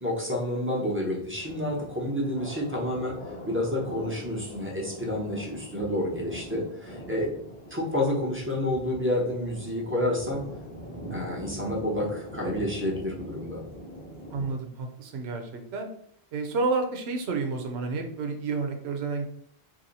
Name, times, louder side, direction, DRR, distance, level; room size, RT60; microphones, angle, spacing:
voice 1, 0.0-3.2 3.4-7.3 7.7-10.4 11.1-13.6, left 1 dB, 15° right, -3 dB, 0.8 m, -29 dB
Thunder, 1.3-14.5, equal, 25° left, 1.0 m, -42 dB
voice 2, 14.3-15.9 16.3-19.3, right 4 dB, 85° right, 5 dB, 0.9 m, -30 dB
2.7 x 2.7 x 3.9 m, 0.66 s
omnidirectional pair, 1.1 m